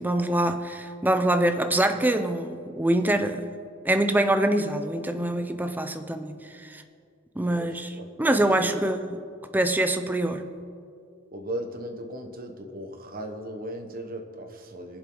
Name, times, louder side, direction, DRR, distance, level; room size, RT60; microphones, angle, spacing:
voice 1, 0.0-3.4 3.8-6.8 7.4-9.0 9.5-10.4, right 1 dB, 10° right, 8 dB, 0.6 m, -24 dB
voice 2, 7.5-8.8 11.3-15.0, right 1 dB, 45° right, 5 dB, 1.2 m, -37 dB
22.0 x 7.6 x 3.9 m, 2.3 s
head